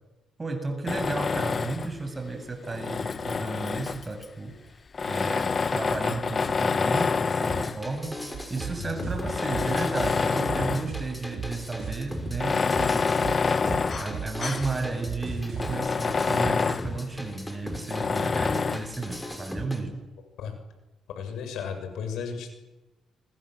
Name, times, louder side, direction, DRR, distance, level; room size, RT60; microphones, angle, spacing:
voice 1, 0.4-4.5 5.1-8.2 8.5-12.7 12.9-13.2 14.0-20.0, right 3 dB, 25° right, 6 dB, 7.4 m, -33 dB
Tools, 0.9-2.0 2.6-4.3 4.9-7.9 8.6-8.7 9.2-11.0 11.3-11.4 12.3-14.7 15.1-15.2 15.6-16.9 17.9-18.9, left 5 dB, 35° left, 0.9 m, -27 dB
sound 1, 7.4-19.8, left 1 dB, 10° left, 6.0 m, -38 dB
sound 2, 8.3-15.7, right 8 dB, 60° right, 5.3 m, -36 dB
voice 2, 8.7-9.1 20.4-20.5 21.2-22.5, left 6 dB, 80° left, 7 dB, 7.1 m, -34 dB
28.5 x 25.0 x 7.9 m, 1.0 s
cardioid pair, 90°, 0 cm